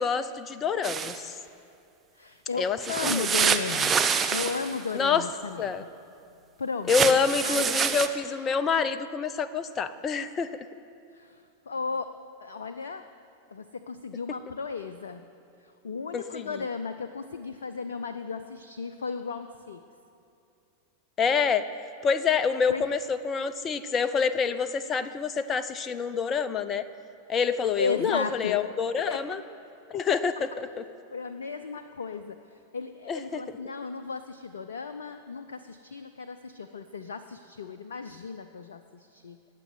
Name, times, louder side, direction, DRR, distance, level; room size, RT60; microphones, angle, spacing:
voice 1, 0.0-1.4 2.6-3.3 4.9-5.2 5.6-5.8 6.9-10.7 16.1-16.6 21.2-21.7 22.0-26.9 27.3-29.4 29.9-30.8 33.1-33.6, left 6 dB, 25° left, 12 dB, 0.7 m, -27 dB
sound 1, 0.8-1.2 2.8-4.7 6.9-8.1, right 6 dB, 20° right, 0.8 m, -26 dB
voice 2, 2.1-4.0 4.3-5.9 6.6-7.7 11.1-12.1 12.4-13.1 13.5-15.3 15.6-19.8 22.7-22.8 27.8-28.6 29.1-29.2 31.1-39.4, left 5 dB, 65° left, 9 dB, 0.6 m, -35 dB
18.5 x 7.6 x 9.5 m, 2.6 s
figure-of-eight pair, 90°, 0 cm